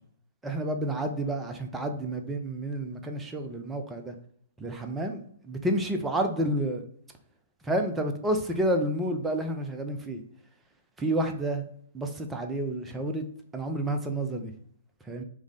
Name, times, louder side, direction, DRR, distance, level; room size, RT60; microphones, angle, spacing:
voice 1, 0.4-4.1 4.6-6.8 7.6-10.2 11.0-11.7 11.9-13.2 13.5-14.5 15.1-15.2, right 1 dB, 10° right, 5 dB, 0.5 m, -30 dB
4.7 x 2.1 x 3.6 m, 0.63 s
figure-of-eight pair, 115°, 0 cm